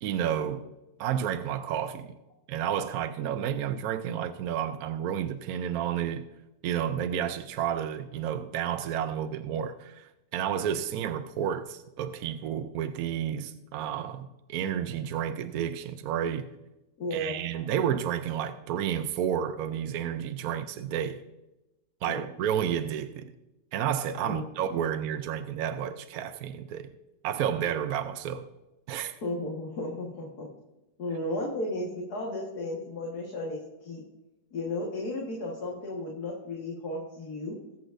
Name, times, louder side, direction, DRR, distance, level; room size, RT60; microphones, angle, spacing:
voice 1, 0.0-0.6 1.0-2.2 2.5-6.3 6.6-16.5 17.1-21.2 22.0-23.3 23.7-26.9 27.2-28.5 28.9-29.1, right 9 dB, 70° right, 1.0 m, -31 dB
voice 2, 17.0-17.4 22.1-22.2 24.2-24.5 29.2-30.5 31.0-34.0 34.5-37.6, left 1 dB, 60° left, 2.1 m, -34 dB
21.0 x 8.0 x 2.6 m
omnidirectional pair, 1.9 m